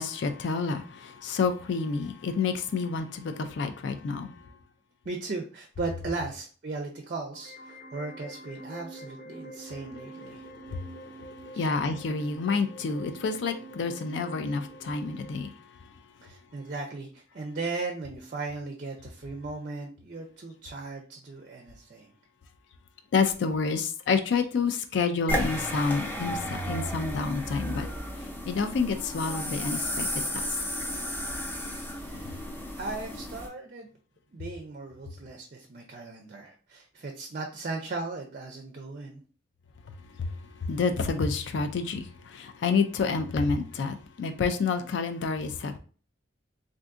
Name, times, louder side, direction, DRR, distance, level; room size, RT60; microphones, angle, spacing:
voice 1, 0.0-4.3 10.4-15.5 23.1-27.9 28.5-30.4 40.2-40.3 40.6-45.8, left 4 dB, 70° left, 0.3 m, -29 dB
voice 2, 5.0-10.5 11.5-11.7 16.2-22.1 32.0-32.4 32.7-33.9 34.3-39.2, right 3 dB, 45° right, 0.4 m, -37 dB
sound 1, 7.3-15.3, right 2 dB, 40° left, 0.9 m, -46 dB
sound 2, 25.3-33.5, equal, 10° left, 0.5 m, -33 dB
3.6 x 2.5 x 2.4 m
head